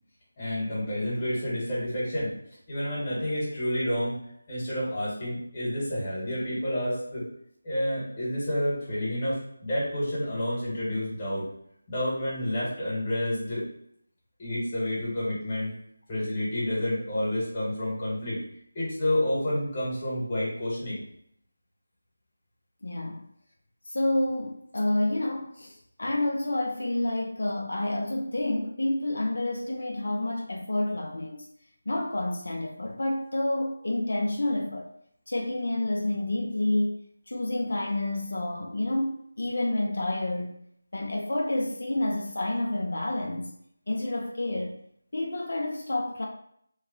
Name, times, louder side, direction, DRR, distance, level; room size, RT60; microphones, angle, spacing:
voice 1, 0.4-2.4 2.7-4.1 4.5-7.2 7.6-11.4 11.9-13.7 14.4-15.7 16.1-18.4 18.7-21.0, left 1 dB, 20° left, 1.2 m, -29 dB
voice 2, 22.8-23.3 23.8-31.5 31.9-34.9 35.3-40.6 40.9-43.5 43.9-44.8 45.1-46.3, left 1 dB, 70° left, 0.4 m, -29 dB
3.1 x 2.1 x 3.6 m
figure-of-eight pair, 170°, 0 cm